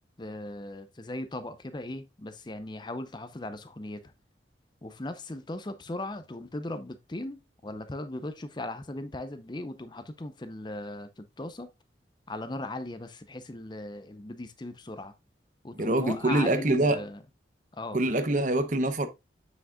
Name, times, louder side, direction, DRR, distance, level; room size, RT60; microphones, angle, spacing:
voice 1, 0.2-4.1 4.8-11.7 12.3-15.1 15.6-17.2 17.7-18.0, left 2 dB, 25° left, 0.6 m, -38 dB
voice 2, 15.7-17.0 17.9-19.1, right 2 dB, 45° right, 0.8 m, -25 dB
7.2 x 6.3 x 2.3 m
head